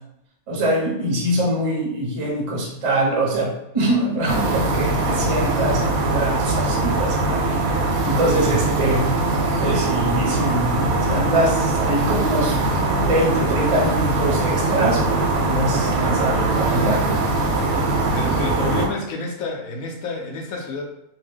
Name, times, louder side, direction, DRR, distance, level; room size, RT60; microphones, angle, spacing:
voice 1, 0.5-7.6 8.0-9.1 9.6-12.6 13.0-17.1, right 1 dB, 40° right, -2 dB, 0.4 m, -23 dB
sound 1, 4.3-18.9, right 2 dB, 90° right, 1.1 m, -21 dB
voice 2, 18.1-20.8, left 3 dB, 80° left, 0 dB, 1.0 m, -29 dB
2.7 x 2.1 x 3.4 m, 0.83 s
omnidirectional pair, 1.5 m